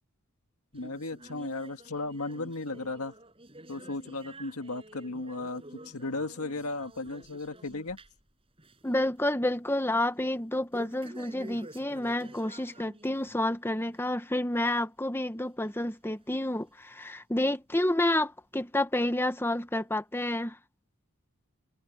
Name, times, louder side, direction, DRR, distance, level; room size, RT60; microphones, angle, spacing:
voice 1, 0.7-3.1 3.7-8.0, left 2 dB, 85° left, 1.8 m, -35 dB
sound 1, 0.7-8.3 8.6-8.9 9.3-9.4 10.7-13.4 13.8-14.0 14.7-14.8 15.6-15.7 16.5-16.6, right 1 dB, 25° right, 5.7 m, -50 dB
voice 2, 8.8-20.6, left 1 dB, 10° left, 0.9 m, -29 dB
head